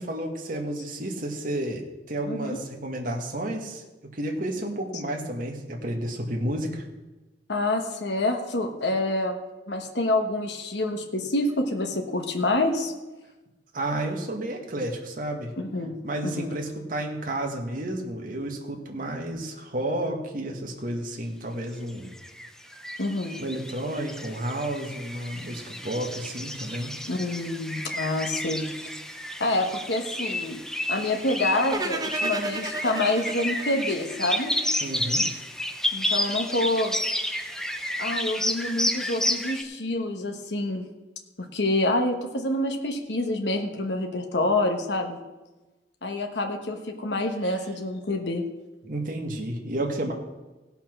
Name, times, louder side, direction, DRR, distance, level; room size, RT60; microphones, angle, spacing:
voice 1, 0.0-3.8 4.1-6.8 13.7-15.5 16.0-22.1 23.4-26.9 34.8-35.3 47.5-47.6 48.8-50.1, right 1 dB, 50° right, 1 dB, 1.6 m, -31 dB
voice 2, 2.2-2.6 7.5-9.4 9.7-12.9 15.6-16.0 16.2-16.5 23.0-23.4 27.1-28.6 29.4-30.6 30.9-34.5 35.9-37.0 38.0-40.8 41.4-45.2 46.0-48.4, left 2 dB, 70° left, 4 dB, 1.3 m, -27 dB
sound 1, 21.9-39.6, left 1 dB, 5° left, 0.7 m, -31 dB
sound 2, 31.7-34.9, right 3 dB, 20° right, 0.9 m, -33 dB
17.0 x 5.8 x 6.1 m, 1.1 s
head